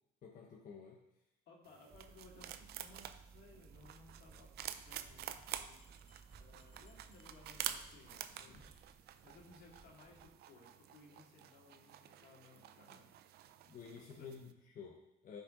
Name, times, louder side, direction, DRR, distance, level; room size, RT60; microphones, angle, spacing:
voice 1, 0.2-1.0 8.5-8.7 13.7-15.4, left 6 dB, 50° left, 0 dB, 1.1 m, -52 dB
voice 2, 1.5-5.8 6.3-8.8 9.2-13.2 14.1-14.3, left 3 dB, 75° left, -1 dB, 2.5 m, -61 dB
sound 1, 1.6-14.5, right 11 dB, 70° right, 0.6 m, -49 dB
sound 2, 1.9-10.3, right 5 dB, 20° right, 0.5 m, -61 dB
Bell, 5.8-8.4 8.6-8.9 9.2-9.3 9.6-9.7 10.0-10.1, left 2 dB, 35° left, 2.8 m, -72 dB
12.5 x 5.5 x 3.9 m, 0.88 s
cardioid pair, 110°, 17 cm